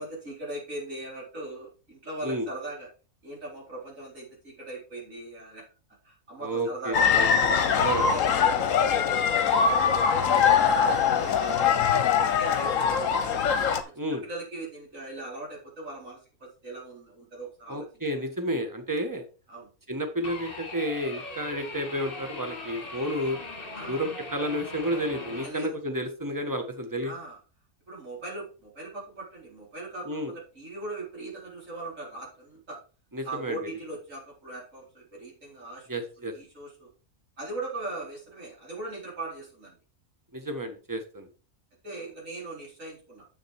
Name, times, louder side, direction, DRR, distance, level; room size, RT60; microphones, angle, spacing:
voice 1, 0.0-2.9 3.2-5.6 6.0-7.1 7.7-10.6 10.9-13.5 13.8-13.9 14.2-18.0 19.5-19.7 23.7-24.1 25.4-25.8 27.0-27.4 27.9-32.8 33.2-35.9 36.2-36.9 37.4-39.8 41.8-43.3, right 2 dB, 60° right, -3 dB, 4.5 m, -40 dB
voice 2, 6.4-8.1 13.9-14.2 17.7-19.2 19.9-23.4 23.9-27.1 30.0-30.3 33.1-33.6 35.9-36.3 40.3-41.3, equal, 15° right, 6 dB, 1.4 m, -31 dB
sound 1, 6.9-13.8, left 7 dB, 65° left, 1.2 m, -22 dB
sound 2, 20.2-25.5, left 3 dB, 40° left, 2.0 m, -40 dB
7.7 x 6.6 x 4.4 m, 0.35 s
omnidirectional pair, 1.5 m